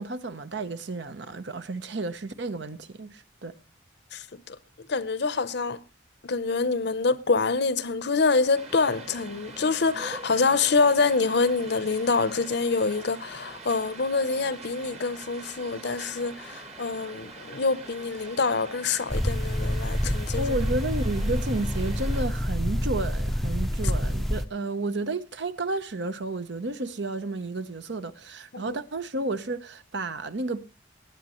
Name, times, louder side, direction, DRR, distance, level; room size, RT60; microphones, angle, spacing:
voice 1, 0.0-3.5 20.4-30.6, right 2 dB, 60° right, 0.8 m, -32 dB
voice 2, 4.1-4.6 4.9-5.8 6.2-20.4 28.5-28.6, left 4 dB, 60° left, 0.7 m, -26 dB
sound 1, 8.5-22.2, right 3 dB, 35° right, 1.5 m, -44 dB
sound 2, 19.1-24.5, equal, ahead, 0.5 m, -27 dB
19.5 x 9.7 x 3.0 m
head